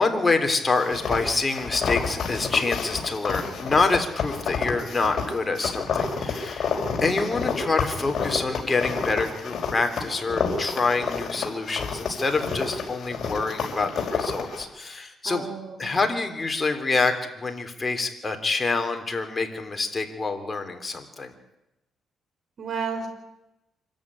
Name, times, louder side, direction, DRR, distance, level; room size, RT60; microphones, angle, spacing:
voice 1, 0.0-6.7 7.0-15.5 15.8-21.3, left 3 dB, 20° left, 5 dB, 3.5 m, -26 dB
sound 1, 0.8-14.6, left 5 dB, 50° left, 5.3 m, -29 dB
voice 2, 15.2-15.9 22.6-23.1, right 5 dB, 50° right, 6 dB, 5.8 m, -32 dB
25.5 x 14.0 x 10.0 m, 0.93 s
cardioid pair, 100°, 0 cm